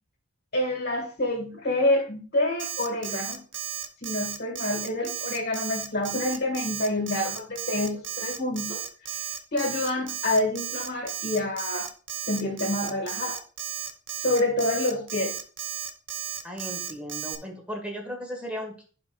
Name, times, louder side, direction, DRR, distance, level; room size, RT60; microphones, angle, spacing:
voice 1, 0.5-3.4 4.0-8.8 9.1-9.2 9.5-11.9 12.3-13.4 14.2-15.3, left 2 dB, 55° left, 2 dB, 1.6 m, -27 dB
Alarm, 2.6-17.4, right 9 dB, 60° right, 0.8 m, -34 dB
voice 2, 16.4-18.8, equal, 5° right, 1 dB, 1.5 m, -36 dB
13.0 x 5.1 x 2.3 m, 0.39 s
head